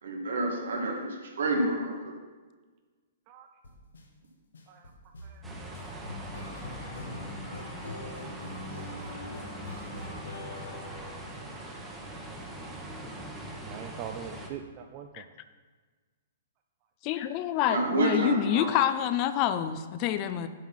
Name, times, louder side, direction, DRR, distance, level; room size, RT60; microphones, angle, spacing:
voice 1, 0.0-2.1 17.7-18.7, right 2 dB, 80° right, 1 dB, 1.8 m, -29 dB
sound 1, 3.6-4.0 4.5-11.7, left 2 dB, 85° left, 1.1 m, -43 dB
voice 2, 5.2-5.8 6.2-6.3 8.2-8.6 8.9-9.4 9.9-10.1 10.4-10.9 11.8-12.0 13.0-13.3 13.6-15.2, right 9 dB, 40° right, 5 dB, 0.5 m, -45 dB
sound 2, 5.4-14.5, right 1 dB, 10° right, 1.1 m, -42 dB
voice 3, 17.0-20.5, left 11 dB, 40° left, 11 dB, 0.5 m, -27 dB
7.3 x 4.6 x 5.7 m, 1.4 s
hypercardioid pair, 130°, 0 cm